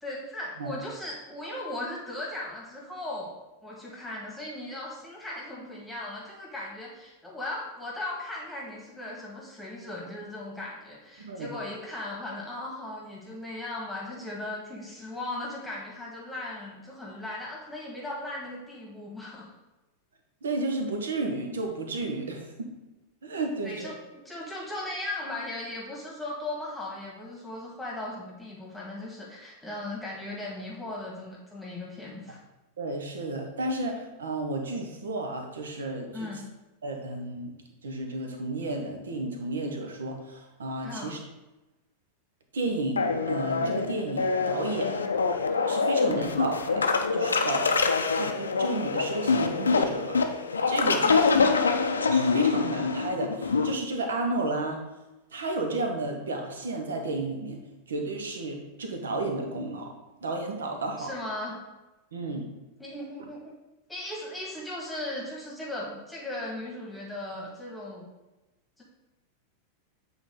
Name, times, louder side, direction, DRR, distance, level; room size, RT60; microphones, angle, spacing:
voice 1, 0.0-3.3 3.6-19.5 23.6-24.0 24.3-32.4 36.1-36.4 40.8-41.1 50.9-51.7 61.0-61.6 62.8-63.5 63.9-68.1 68.8-68.9, left 1 dB, 5° left, -5 dB, 1.7 m, -37 dB
voice 2, 11.2-11.5 20.4-22.7 23.2-23.9 32.8-36.3 36.8-37.5 37.8-41.2 42.5-45.0 45.6-46.9 47.1-50.2 50.6-51.0 52.1-54.8 55.3-57.6 57.9-59.9 60.2-61.1 62.1-62.5 63.2-63.3, right 2 dB, 65° right, 3 dB, 1.1 m, -32 dB
sound 1, 43.0-53.7, left 4 dB, 75° left, 0.5 m, -25 dB
8.3 x 4.1 x 3.7 m, 1.1 s
figure-of-eight pair, 90°, 0 cm